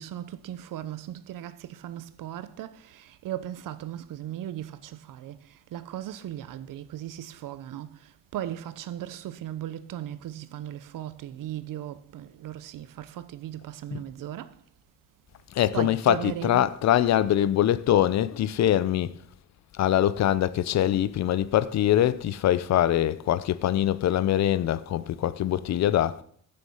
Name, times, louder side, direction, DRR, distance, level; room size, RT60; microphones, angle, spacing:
voice 1, 0.0-14.5 15.7-16.7, right 12 dB, 75° right, 0.9 m, -37 dB
voice 2, 15.5-19.1 19.8-26.2, left 11 dB, 55° left, 0.6 m, -23 dB
15.5 x 6.7 x 5.6 m
cardioid pair, 160°, 33 cm